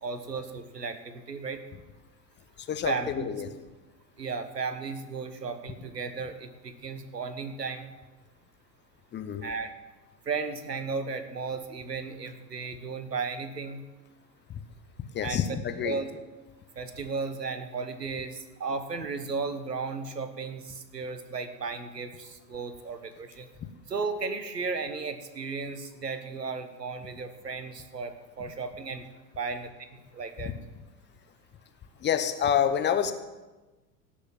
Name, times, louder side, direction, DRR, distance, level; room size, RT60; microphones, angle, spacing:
voice 1, 0.0-1.6 2.8-3.3 4.2-7.9 9.4-9.7 10.2-13.8 15.2-15.4 15.8-16.1 16.8-23.5 23.9-29.0 29.4-29.7 30.1-30.5, right 4 dB, 80° right, 10 dB, 1.3 m, -35 dB
voice 2, 2.6-3.5 9.1-9.5 14.5-14.6 15.1-16.0 32.0-33.1, left 8 dB, 20° left, 8 dB, 1.0 m, -28 dB
17.5 x 6.5 x 7.6 m, 1.2 s
figure-of-eight pair, 85°, 48 cm